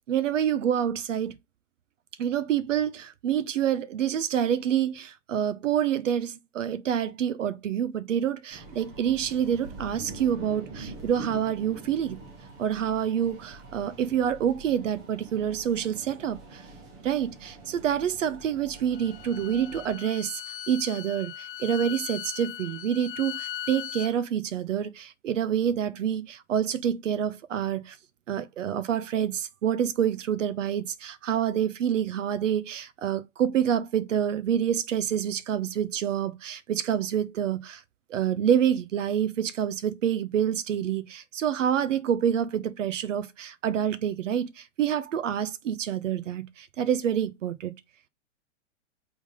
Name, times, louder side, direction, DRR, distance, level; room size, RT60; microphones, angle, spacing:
voice 1, 0.1-1.4 2.2-12.2 12.6-16.7 17.0-20.4 20.7-28.0 28.3-37.8 38.1-47.7, right 9 dB, 90° right, 0.7 m, -27 dB
sound 1, 8.5-19.9, right 3 dB, 10° right, 0.4 m, -45 dB
Bowed string instrument, 18.8-24.1, left 11 dB, 50° left, 0.7 m, -39 dB
5.0 x 3.5 x 5.5 m
hypercardioid pair, 150°, 36 cm